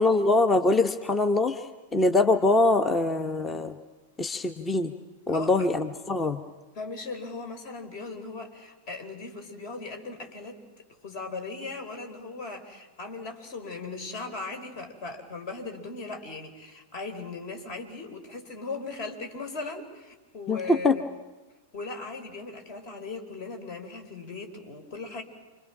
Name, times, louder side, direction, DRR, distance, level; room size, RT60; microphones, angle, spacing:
voice 1, 0.0-3.7 4.2-4.9 5.3-6.4 20.5-21.0, left 2 dB, 15° left, 10 dB, 1.1 m, -23 dB
voice 2, 5.3-5.7 6.7-10.6 11.0-21.0 21.7-25.2, left 3 dB, 45° left, 6 dB, 4.9 m, -38 dB
28.5 x 25.0 x 6.2 m, 1.1 s
figure-of-eight pair, 95°, 0 cm